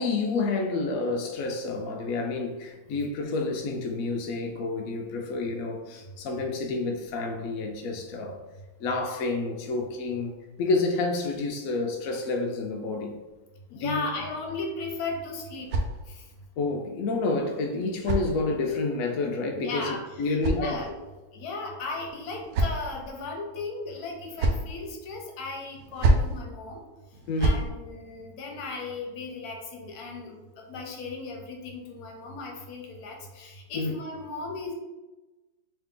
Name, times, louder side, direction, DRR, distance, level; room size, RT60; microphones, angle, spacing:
voice 1, 0.0-8.4 8.8-13.2 13.7-14.1 16.6-20.8 27.3-27.6 33.7-33.9, left 3 dB, 80° left, 3 dB, 0.7 m, -29 dB
voice 2, 13.7-15.7 16.1-16.2 19.5-21.0 21.3-26.8 27.4-34.7, left 3 dB, 65° left, 1 dB, 1.1 m, -36 dB
sound 1, 14.8-16.4 17.4-18.9 19.9-21.2 22.0-23.1 24.0-24.7 25.7-26.4 27.1-27.7, right 1 dB, 85° right, 0.7 m, -29 dB
3.5 x 3.1 x 3.6 m, 1.1 s
omnidirectional pair, 2.0 m